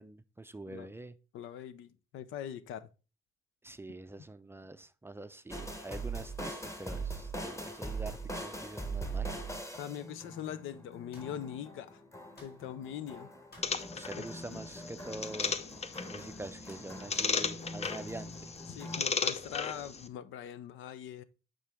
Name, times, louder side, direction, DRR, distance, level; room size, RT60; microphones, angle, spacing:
voice 1, 0.0-1.1 3.6-9.6 14.0-15.6 16.1-18.5, right 2 dB, 10° right, 0.4 m, -45 dB
voice 2, 1.3-2.9 9.8-12.0 12.4-13.3 14.2-14.3 14.5-14.6 18.7-21.2, left 10 dB, 85° left, 0.6 m, -42 dB
sound 1, 5.5-19.0, right 2 dB, 15° left, 1.1 m, -42 dB
sound 2, 11.1-11.4 12.4-12.6 13.5-13.8 15.4-16.1 16.7-16.9 17.8-18.1, left 2 dB, 55° left, 2.5 m, -57 dB
sound 3, 13.6-20.1, left 5 dB, 30° left, 0.6 m, -36 dB
8.7 x 3.8 x 3.5 m
cardioid pair, 90°, 20 cm